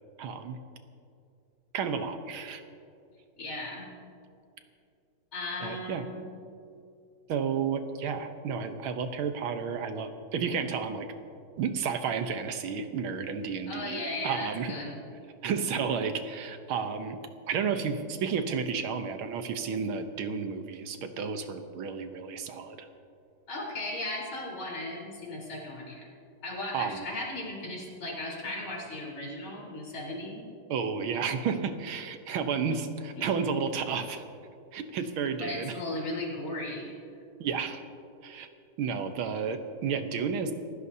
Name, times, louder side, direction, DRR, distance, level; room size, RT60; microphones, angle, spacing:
voice 1, 0.2-0.6 1.7-2.6 5.6-6.0 7.3-11.1 11.6-14.7 15.4-17.2 17.5-22.9 26.7-27.1 30.7-34.2 34.7-35.7 37.4-37.8 38.2-38.5 38.8-40.5, right 6 dB, 90° right, 7 dB, 1.8 m, -32 dB
voice 2, 3.4-3.9 5.3-6.2 13.7-14.9 23.5-26.0 26.4-30.4 33.2-33.3 35.4-36.9, left 2 dB, 75° left, -4 dB, 4.8 m, -36 dB
28.0 x 15.0 x 2.8 m, 2.5 s
omnidirectional pair, 2.2 m